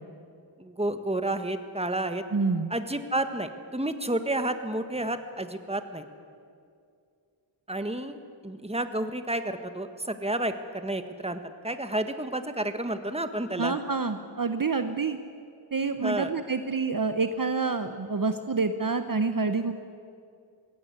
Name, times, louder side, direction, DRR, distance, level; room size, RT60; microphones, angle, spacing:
voice 1, 0.6-2.2 2.7-6.1 7.7-13.8 16.0-16.3, right 1 dB, 15° right, 8 dB, 1.5 m, -31 dB
voice 2, 2.3-2.7 13.6-15.2 15.7-19.7, right 4 dB, 45° right, 9 dB, 0.9 m, -27 dB
21.0 x 17.0 x 9.6 m, 2.4 s
wide cardioid pair, 55°, 47 cm